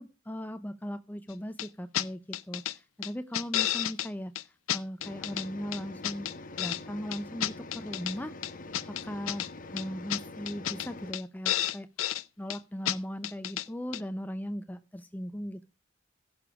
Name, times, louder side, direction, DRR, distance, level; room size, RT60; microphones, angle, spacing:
voice 1, 0.0-6.3 6.6-8.3 8.9-11.9 12.4-15.6, equal, 10° left, 10 dB, 0.5 m, -38 dB
sound 1, 1.6-1.7 1.9-2.1 2.3-2.7 3.0-4.1 4.4-4.5 4.7-5.5 5.7-6.8 7.1-8.1 8.4-9.5 9.8-9.9 10.1-10.2 10.5-10.9 11.1-11.2 11.5-12.2 12.5-12.6 12.9-13.0 13.2-13.7 13.9-14.0, left 12 dB, 90° left, 0.6 m, -31 dB
sound 2, 5.0-11.1, left 2 dB, 45° left, 0.9 m, -45 dB
16.0 x 6.8 x 4.8 m, 0.29 s
head